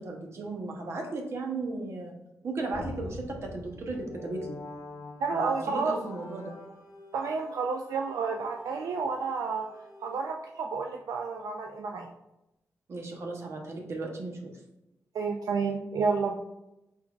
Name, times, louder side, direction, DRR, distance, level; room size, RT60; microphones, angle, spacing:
voice 1, 0.0-2.1 2.4-4.6 5.3-6.5 12.9-14.5, right 3 dB, 45° right, 1 dB, 0.8 m, -35 dB
sound 1, 2.7-7.2, left 2 dB, 70° left, 0.5 m, -44 dB
voice 2, 5.2-6.0 7.1-9.7 10.0-12.1 15.1-16.3, right 4 dB, 75° right, 2 dB, 0.3 m, -30 dB
sound 2, 5.7-10.6, equal, 20° right, 1.1 m, -51 dB
4.4 x 3.9 x 2.3 m, 0.90 s
wide cardioid pair, 165°, 6 cm